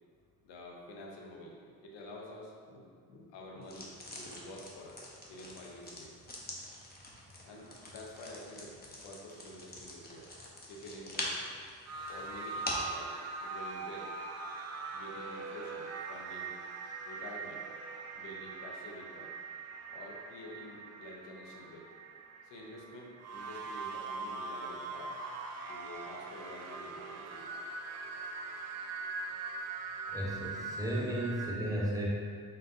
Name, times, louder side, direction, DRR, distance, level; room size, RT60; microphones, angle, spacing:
voice 1, 0.4-6.1 7.4-10.3 10.7-11.4 12.1-14.1 14.9-16.6 17.0-17.7 18.1-19.3 19.9-22.0 22.4-25.2 25.7-27.6, left 1 dB, 65° left, -1 dB, 0.8 m, -49 dB
sound 1, 3.6-13.0, left 1 dB, 20° left, 0.9 m, -44 dB
sound 2, 11.9-31.5, right 3 dB, 35° right, 0.4 m, -42 dB
voice 2, 30.1-32.1, right 1 dB, 5° right, -5 dB, 0.9 m, -34 dB
4.0 x 3.7 x 2.6 m, 2.1 s
hypercardioid pair, 60°, 46 cm